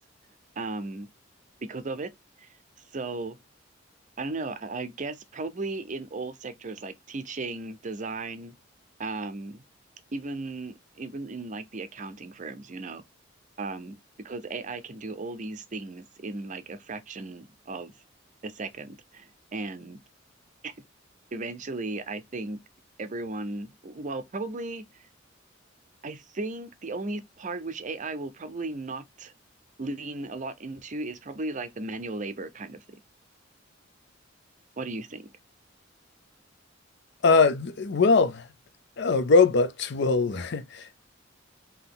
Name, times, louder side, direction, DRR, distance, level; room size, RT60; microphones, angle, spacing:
voice 1, 0.6-1.1 1.6-2.1 2.4-2.5 2.9-3.4 4.2-8.5 9.0-9.6 10.1-13.0 13.6-14.0 14.2-17.9 18.4-20.0 20.6-20.7 21.3-22.6 23.0-24.9 26.0-29.3 29.8-32.8 34.8-35.3, right 3 dB, 40° right, 0.6 m, -36 dB
voice 2, 37.2-38.5 39.0-40.9, left 4 dB, 65° left, 0.6 m, -21 dB
3.9 x 2.9 x 3.8 m
head